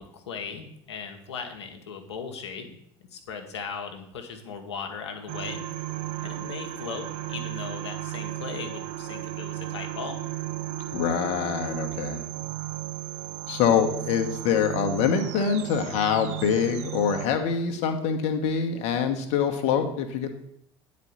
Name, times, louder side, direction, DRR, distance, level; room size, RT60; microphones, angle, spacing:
voice 1, 0.0-2.8 3.1-5.7 6.2-10.2, left 5 dB, 75° left, 4 dB, 1.2 m, -38 dB
sound 1, 5.3-17.3, right 14 dB, 50° right, 0.7 m, -35 dB
voice 2, 10.9-12.2 13.5-20.4, left 7 dB, 50° left, 5 dB, 1.2 m, -25 dB
9.6 x 4.3 x 7.1 m, 0.72 s
figure-of-eight pair, 65°, 14 cm